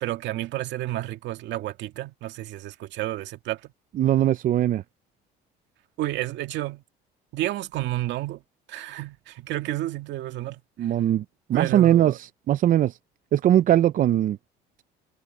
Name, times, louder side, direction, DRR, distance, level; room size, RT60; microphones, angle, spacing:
voice 1, 0.0-3.6 6.0-6.8 7.3-8.4 8.7-10.6 11.5-12.2, right 15 dB, 70° right, 2.2 m, -30 dB
voice 2, 3.9-4.8 10.8-11.2 11.5-13.0 13.3-14.4, right 12 dB, 45° right, 0.5 m, -20 dB
cardioid pair, 115°, 19 cm